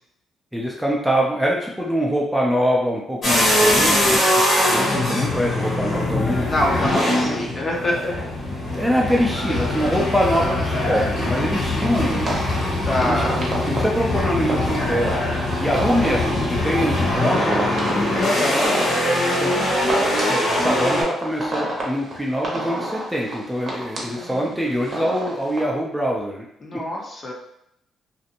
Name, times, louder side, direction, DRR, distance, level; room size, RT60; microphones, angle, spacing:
voice 1, 0.5-4.2 4.7-6.5 8.7-12.3 13.0-13.2 13.7-15.1 15.6-17.7 19.4-19.5 20.3-26.4 26.7-26.8, equal, 5° right, -3 dB, 0.5 m, -24 dB
sound 1, 3.2-21.0, left 1 dB, 55° left, 1.2 m, -22 dB
voice 2, 6.5-8.1 12.8-13.4 18.2-19.6 24.0-24.6 26.6-27.3, left 1 dB, 35° left, -1 dB, 0.7 m, -26 dB
sound 2, 11.8-25.6, right 1 dB, 45° right, 0.7 m, -30 dB
2.5 x 2.0 x 2.8 m, 0.75 s
cardioid pair, 90°, 0 cm